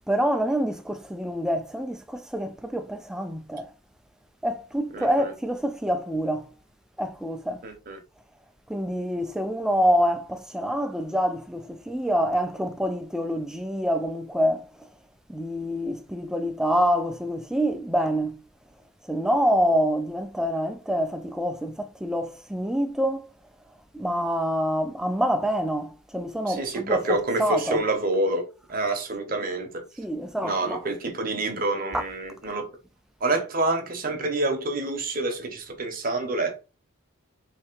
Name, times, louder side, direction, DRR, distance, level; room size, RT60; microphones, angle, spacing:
voice 1, 0.1-3.7 4.4-6.5 7.0-7.6 8.7-14.9 15.3-18.4 19.1-23.3 23.9-27.8 30.0-30.8 31.9-32.0, equal, 5° right, 0.3 m, -26 dB
voice 2, 4.9-5.3 7.6-8.0 26.5-29.8 30.4-32.7 33.2-36.6, right 2 dB, 40° right, 0.8 m, -27 dB
3.3 x 2.8 x 4.5 m
head